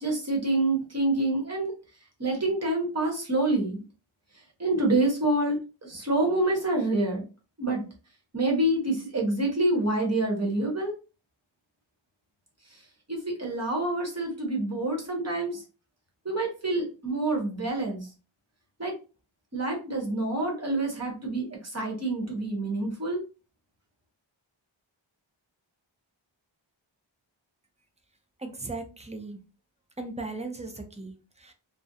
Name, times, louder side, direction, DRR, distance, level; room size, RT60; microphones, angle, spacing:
voice 1, 0.0-1.7 2.2-3.8 4.6-7.2 7.6-7.8 8.3-10.9 13.1-15.6 16.2-18.1 18.8-18.9 19.5-23.2, right 2 dB, 30° right, 0 dB, 0.9 m, -27 dB
voice 2, 28.4-29.4 30.0-31.5, right 2 dB, 15° right, 5 dB, 0.4 m, -37 dB
2.4 x 2.1 x 2.7 m, 0.33 s
wide cardioid pair, 75°, 48 cm